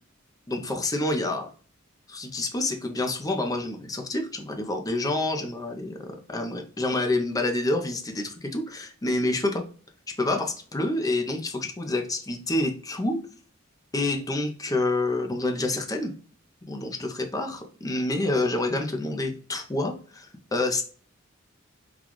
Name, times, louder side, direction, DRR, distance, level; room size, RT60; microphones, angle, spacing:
voice 1, 0.5-1.5 2.1-9.6 10.2-13.2 13.9-16.1 16.7-20.8, left 2 dB, 20° left, 4 dB, 0.5 m, -28 dB
3.8 x 2.3 x 2.9 m, 0.43 s
head